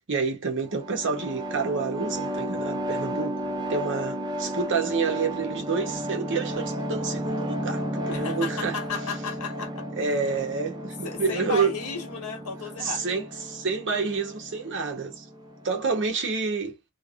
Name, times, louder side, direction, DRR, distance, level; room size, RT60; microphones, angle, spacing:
voice 1, 0.1-3.4 3.7-8.8 10.0-11.7 12.8-15.2 15.6-16.8, right 4 dB, 55° right, 0.9 m, -28 dB
sound 1, 0.6-16.1, equal, 20° right, 0.4 m, -33 dB
voice 2, 8.1-9.8 11.0-13.0, left 5 dB, 80° left, 1.1 m, -34 dB
3.3 x 2.1 x 2.3 m
head